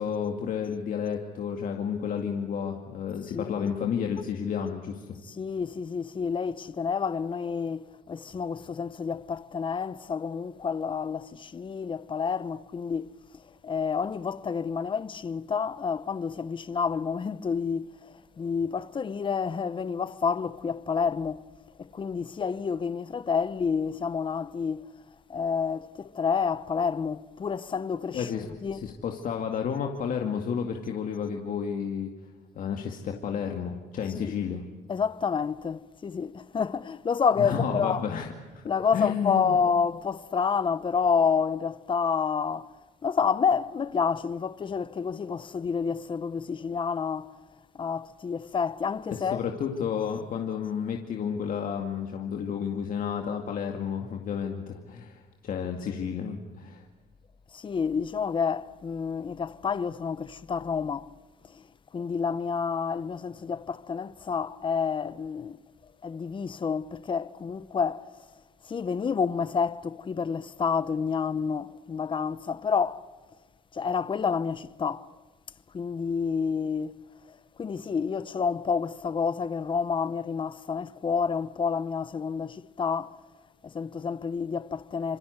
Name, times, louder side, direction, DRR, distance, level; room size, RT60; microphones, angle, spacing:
voice 1, 0.0-5.1 28.1-28.5 28.7-32.1 32.6-34.6 37.4-38.3 38.5-38.6 38.9-39.6 49.1-56.8, left 7 dB, 55° left, 2.3 m, -31 dB
voice 2, 3.3-3.7 5.4-13.1 13.6-21.4 21.8-24.8 25.3-28.3 28.6-28.8 34.1-34.3 34.9-38.0 38.6-42.7 43.0-47.3 47.7-49.4 57.5-61.1 61.9-65.6 66.0-68.1 68.7-73.1 73.7-75.1 75.7-77.0 77.6-83.2 83.6-85.2, left 6 dB, 30° left, 0.9 m, -29 dB
27.5 x 24.0 x 8.2 m
cardioid pair, 110°, 17 cm